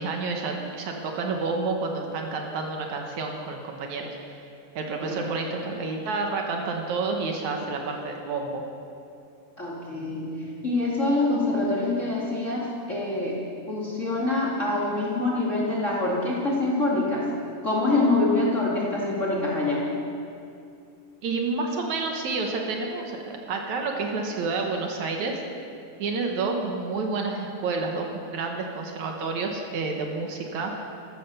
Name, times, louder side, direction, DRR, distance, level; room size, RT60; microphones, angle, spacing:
voice 1, 0.0-4.2 4.8-8.6 21.2-25.4 26.0-30.7, right 3 dB, 65° right, 2 dB, 2.4 m, -29 dB
voice 2, 9.6-10.3 10.6-13.4 13.7-17.2 17.6-19.8, left 2 dB, 25° left, -5 dB, 2.0 m, -25 dB
14.5 x 11.5 x 6.8 m, 2.5 s
omnidirectional pair, 3.8 m